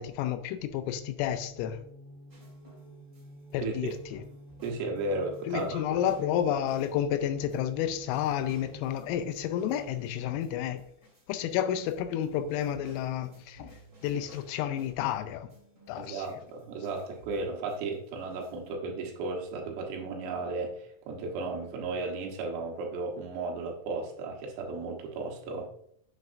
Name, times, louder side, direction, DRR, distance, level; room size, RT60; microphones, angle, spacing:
voice 1, 0.0-1.8 3.5-4.2 5.5-10.8 11.3-15.5 15.9-16.3, left 10 dB, 85° left, 3.1 m, -31 dB
sound 1, 0.7-10.0, right 1 dB, 30° left, 3.0 m, -50 dB
palo alto, 2.3-3.6 3.9-11.6 11.9-15.1 15.5-18.7, equal, 15° right, 2.5 m, -57 dB
voice 2, 3.6-3.9 4.6-5.8 16.0-25.7, right 3 dB, 80° right, 3.9 m, -34 dB
9.4 x 7.4 x 2.6 m
omnidirectional pair, 6.0 m